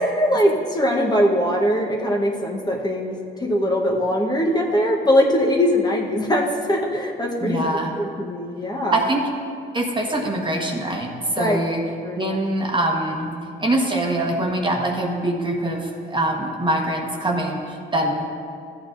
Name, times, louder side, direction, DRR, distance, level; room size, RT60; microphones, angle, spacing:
voice 1, 0.0-9.1 11.4-11.6 12.0-12.4, equal, 20° left, -1 dB, 1.1 m, -21 dB
voice 2, 7.4-7.9 8.9-9.2 9.7-11.8 12.2-13.3 13.6-18.2, right 1 dB, 25° right, 1 dB, 1.2 m, -23 dB
14.5 x 8.6 x 2.6 m, 2.4 s
cardioid pair, 90°, 20 cm